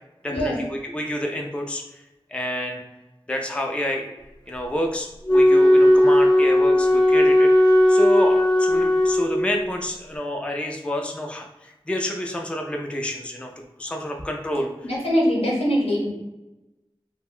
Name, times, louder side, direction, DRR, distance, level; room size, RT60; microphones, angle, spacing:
voice 1, 0.2-2.0 2.3-2.8 3.3-4.1 4.5-13.5 13.8-14.9, left 1 dB, 10° left, 2 dB, 0.3 m, -29 dB
Wind instrument woodwind instrument, 5.3-9.7, left 1 dB, 40° left, 0.6 m, -16 dB
voice 2, 14.8-16.1, equal, 80° left, -4 dB, 0.8 m, -22 dB
2.4 x 2.2 x 3.5 m, 1.0 s
wide cardioid pair, 50°, 10 cm